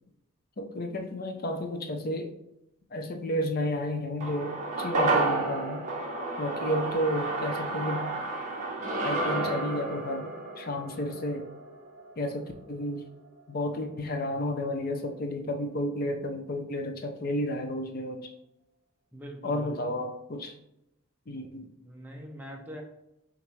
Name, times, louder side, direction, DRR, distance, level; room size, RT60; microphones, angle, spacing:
voice 1, 0.6-2.3 2.9-5.9 6.4-8.2 9.0-11.5 12.2-13.1 13.5-18.3 19.4-20.5 21.3-21.7, left 1 dB, 45° left, 5 dB, 0.5 m, -32 dB
sound 1, 4.2-12.7 13.0-13.1, right 2 dB, 35° right, 0.9 m, -31 dB
voice 2, 19.1-20.0 21.8-22.8, equal, 10° right, 0 dB, 0.6 m, -43 dB
5.9 x 2.5 x 3.1 m, 0.85 s
head